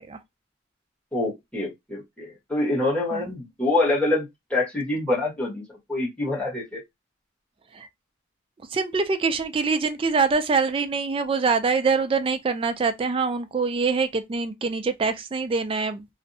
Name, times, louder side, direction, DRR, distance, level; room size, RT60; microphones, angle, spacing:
voice 1, 1.1-5.6 5.9-6.8, left 2 dB, 5° left, 1.1 m, -26 dB
voice 2, 8.7-16.1, right 4 dB, 30° right, 0.3 m, -24 dB
2.6 x 2.0 x 2.6 m
head